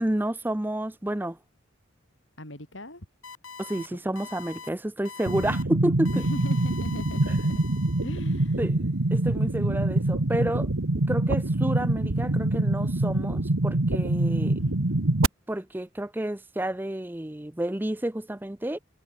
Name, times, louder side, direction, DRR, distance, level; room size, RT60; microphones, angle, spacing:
voice 1, 0.0-1.4 3.6-6.2 8.6-10.7 11.1-14.5 15.5-18.8, right 1 dB, 10° right, 0.5 m, -30 dB
voice 2, 2.4-3.1 3.8-3.9 6.1-7.6 8.0-8.7 14.2-15.0, left 1 dB, 65° left, 6.3 m, -40 dB
sound 1, 3.2-3.9 4.2-4.7 5.1-5.6 6.1-8.4, left 5 dB, 85° left, 7.3 m, -43 dB
sound 2, 5.3-15.3, right 2 dB, 85° right, 1.5 m, -25 dB
head